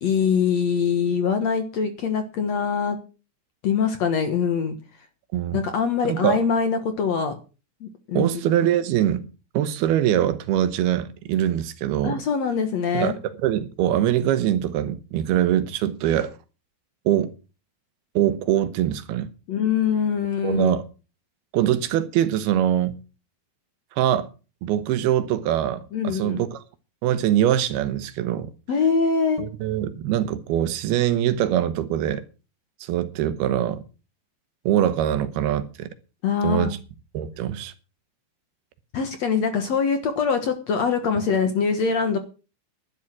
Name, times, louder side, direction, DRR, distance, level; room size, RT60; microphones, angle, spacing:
voice 1, 0.0-3.0 3.6-4.8 5.5-7.3 7.8-8.4 12.0-13.2 19.5-20.7 25.9-26.4 28.7-29.4 36.2-36.7 38.9-42.2, left 6 dB, 60° left, 2.0 m, -23 dB
voice 2, 6.0-6.4 8.1-9.3 9.5-12.2 12.9-16.3 17.1-17.3 18.2-19.3 20.4-20.8 21.5-23.0 23.9-24.3 24.6-26.6 27.0-28.5 29.4-32.2 32.8-33.8 34.7-35.9 36.4-36.8 37.1-37.7, right 11 dB, 80° right, 3.0 m, -23 dB
11.5 x 11.0 x 6.1 m
omnidirectional pair, 4.5 m